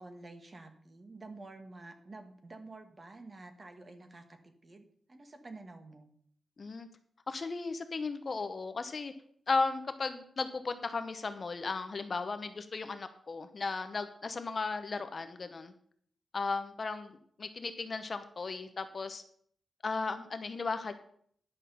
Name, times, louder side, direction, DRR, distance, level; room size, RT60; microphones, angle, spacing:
voice 1, 0.0-6.1, right 2 dB, 30° right, 7 dB, 1.2 m, -50 dB
voice 2, 7.3-9.1 9.5-15.7 16.3-19.2 19.8-20.9, left 4 dB, 35° left, 9 dB, 0.8 m, -35 dB
10.5 x 5.9 x 6.7 m, 0.62 s
wide cardioid pair, 165°, 0 cm